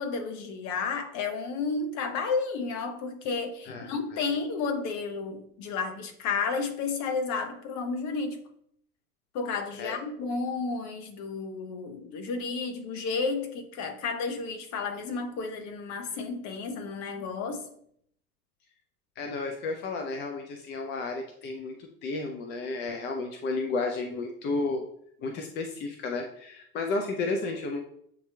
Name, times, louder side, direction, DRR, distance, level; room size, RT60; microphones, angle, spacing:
voice 1, 0.0-8.4 9.3-17.7, left 4 dB, 40° left, 0.9 m, -32 dB
voice 2, 3.7-4.2 9.8-10.0 19.2-21.8 22.0-24.8 25.2-27.8, left 3 dB, 25° left, 0.5 m, -32 dB
7.9 x 2.8 x 2.2 m
hypercardioid pair, 90°, 43 cm